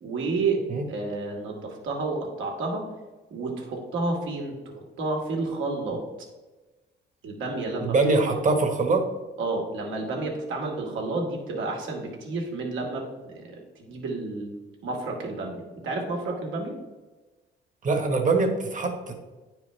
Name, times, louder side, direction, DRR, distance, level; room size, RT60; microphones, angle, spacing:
voice 1, 0.0-0.6 0.9-2.8 3.3-6.0 7.2-7.9 9.4-13.5 13.8-14.5 14.8-16.8, right 3 dB, 80° right, 0 dB, 1.9 m, -30 dB
voice 2, 7.8-9.0 17.8-19.1, right 3 dB, 40° right, 4 dB, 1.4 m, -23 dB
9.9 x 4.8 x 3.3 m, 1.2 s
cardioid pair, 90°, 20 cm